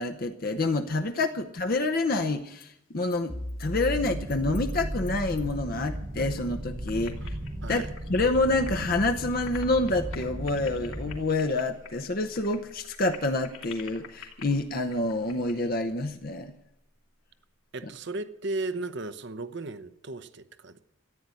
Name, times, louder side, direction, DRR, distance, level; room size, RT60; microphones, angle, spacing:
voice 1, 0.0-7.2 7.7-7.8 8.1-16.5, left 2 dB, 45° left, 6 dB, 0.8 m, -27 dB
sound 1, 2.4-2.7 3.1-3.2 3.5-3.7 4.0-6.0 6.2-6.6 6.8-9.0 9.2-15.6, left 6 dB, 65° left, 2.7 m, -48 dB
sound 2, 3.9-11.2, right 1 dB, 20° right, 0.9 m, -37 dB
sound 3, 11.8-14.7, equal, 10° left, 1.3 m, -41 dB
voice 2, 17.7-20.8, right 2 dB, 60° right, 11 dB, 0.9 m, -35 dB
14.0 x 9.5 x 9.7 m, 0.78 s
head